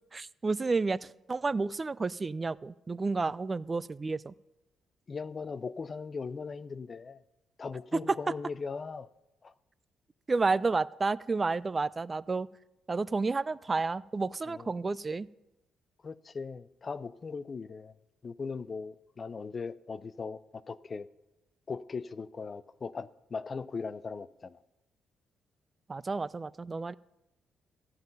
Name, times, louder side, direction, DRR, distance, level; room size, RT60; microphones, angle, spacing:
voice 1, 0.1-4.3 7.9-8.3 10.3-12.5 12.9-15.3 25.9-26.9, right 3 dB, 25° right, 0.4 m, -31 dB
voice 2, 5.1-7.2 7.6-9.1 9.4-9.5 14.5-14.7 16.0-17.9 18.2-21.1 21.7-24.6, left 5 dB, 35° left, 0.5 m, -39 dB
13.5 x 5.7 x 9.1 m
cardioid pair, 90°, 0 cm